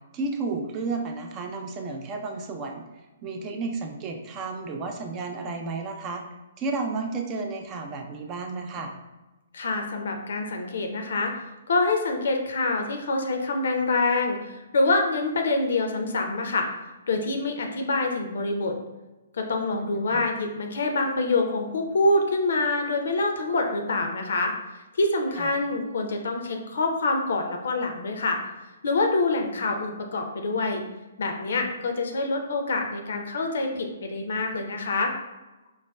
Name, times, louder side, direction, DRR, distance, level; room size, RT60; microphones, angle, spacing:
voice 1, 0.1-6.2 6.6-8.9 20.0-20.3 25.4-25.5, right 3 dB, 25° right, 3 dB, 0.4 m, -32 dB
voice 2, 9.5-11.3 11.7-16.7 17.1-18.7 19.4-24.5 25.0-28.4 28.8-30.8 31.2-35.1, left 2 dB, 65° left, 3 dB, 0.5 m, -26 dB
4.7 x 2.2 x 2.2 m, 1.1 s
figure-of-eight pair, 125°, 0 cm